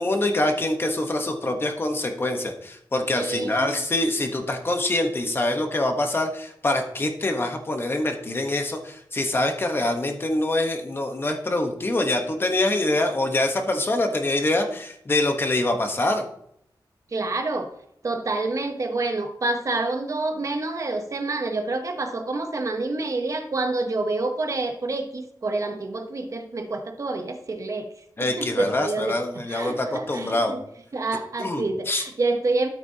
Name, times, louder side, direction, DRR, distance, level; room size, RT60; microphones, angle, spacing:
voice 1, 0.0-16.2 28.2-30.5 31.4-32.0, left 2 dB, 30° left, 5 dB, 1.0 m, -25 dB
voice 2, 3.1-3.7 17.1-17.7 18.0-27.9 28.2-29.2 29.5-30.6 30.9-32.7, right 2 dB, 40° right, 6 dB, 0.8 m, -28 dB
13.0 x 8.4 x 2.8 m, 0.72 s
wide cardioid pair, 170°, 8 cm